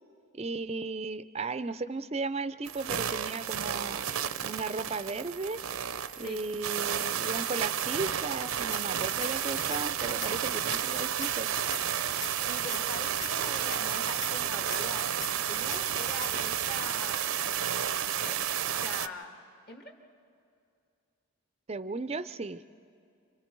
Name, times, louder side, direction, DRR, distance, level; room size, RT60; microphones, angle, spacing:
voice 1, 0.3-4.0 4.4-5.6 6.2-11.5 21.7-22.6, right 3 dB, 30° right, 14 dB, 0.4 m, -35 dB
sound 1, 2.7-19.1, right 9 dB, 80° right, 0.6 m, -31 dB
sound 2, 8.7-9.3 9.6-9.8 10.1-11.3 11.6-11.8 12.1-13.3 13.6-13.8 14.1-15.3 15.6-15.8 16.1-16.5, left 3 dB, 15° left, 0.9 m, -39 dB
sound 3, 8.8-16.9, left 1 dB, 70° left, 1.0 m, -55 dB
voice 2, 12.5-15.1 15.4-17.5 18.0-18.4 18.7-19.4 19.7-19.9, left 2 dB, 45° left, 2 dB, 1.9 m, -43 dB
29.5 x 26.5 x 4.6 m, 2.4 s
head